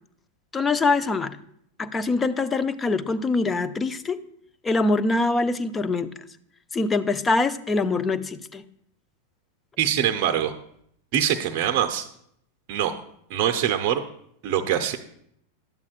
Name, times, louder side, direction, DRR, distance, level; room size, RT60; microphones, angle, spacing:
voice 1, 0.5-1.4 1.8-4.2 4.6-6.1 6.7-8.6, left 3 dB, 15° left, 13 dB, 0.5 m, -24 dB
voice 2, 9.8-10.5 11.1-12.0 12.7-12.9 13.3-14.0 14.4-15.0, right 10 dB, 45° right, 6 dB, 0.6 m, -23 dB
12.0 x 8.3 x 2.4 m, 0.70 s
figure-of-eight pair, 90°, 0 cm